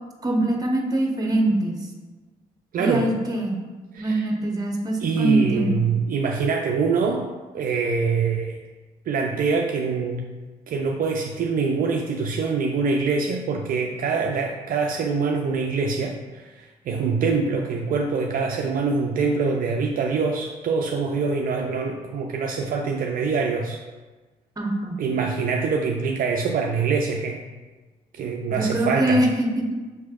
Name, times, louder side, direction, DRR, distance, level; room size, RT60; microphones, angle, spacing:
voice 1, 0.2-1.8 2.8-3.6 4.0-5.9 24.6-25.0 28.5-29.7, right 1 dB, 20° right, 1 dB, 1.0 m, -23 dB
voice 2, 2.7-3.1 3.9-4.3 5.0-7.2 7.5-8.6 9.1-10.3 10.7-23.8 25.0-27.4 28.2-29.2, right 4 dB, 55° right, 1 dB, 0.4 m, -24 dB
5.9 x 3.2 x 2.4 m, 1.3 s
supercardioid pair, 60°, 17 cm